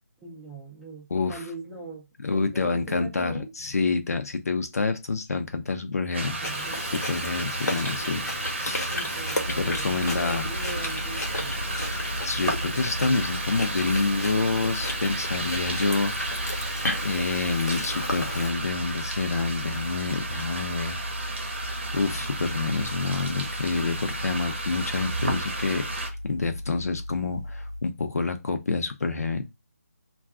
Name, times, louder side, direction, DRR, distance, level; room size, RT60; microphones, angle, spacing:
voice 1, 0.2-3.5 6.4-7.0 8.0-8.3 8.9-11.6, right 1 dB, 5° right, 0.5 m, -40 dB
voice 2, 1.1-1.4 2.2-6.4 7.1-8.2 8.6-9.0 9.6-10.5 12.2-21.0 21.9-25.8 26.2-29.5, left 4 dB, 70° left, 0.6 m, -28 dB
sound 1, 6.1-26.1, right 2 dB, 45° right, 0.8 m, -33 dB
Chewing mastication, 6.4-18.5, left 1 dB, 90° left, 1.1 m, -34 dB
sound 2, 9.4-27.8, left 1 dB, 90° right, 0.6 m, -37 dB
2.4 x 2.2 x 3.6 m
figure-of-eight pair, 165°, 9 cm